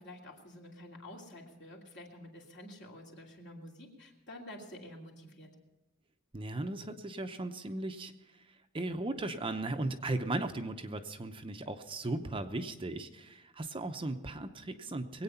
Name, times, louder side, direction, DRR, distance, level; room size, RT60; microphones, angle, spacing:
voice 1, 0.0-5.5, left 1 dB, 55° left, -1 dB, 2.8 m, -49 dB
voice 2, 6.3-8.1 8.7-15.2, right 2 dB, 25° right, 7 dB, 0.7 m, -37 dB
22.5 x 8.8 x 5.7 m, 1.0 s
head